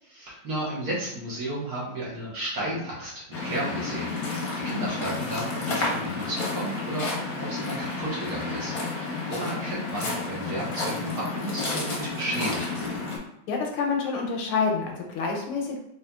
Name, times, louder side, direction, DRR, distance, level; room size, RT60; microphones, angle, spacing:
voice 1, 0.0-9.0 9.3-13.0, right 1 dB, 50° right, -7 dB, 1.5 m, -33 dB
Waves surf, 3.3-13.2, left 3 dB, 55° left, 1.1 m, -31 dB
voice 2, 13.5-15.8, left 4 dB, 85° left, 1 dB, 1.6 m, -27 dB
4.2 x 3.2 x 2.3 m, 0.81 s
omnidirectional pair, 2.3 m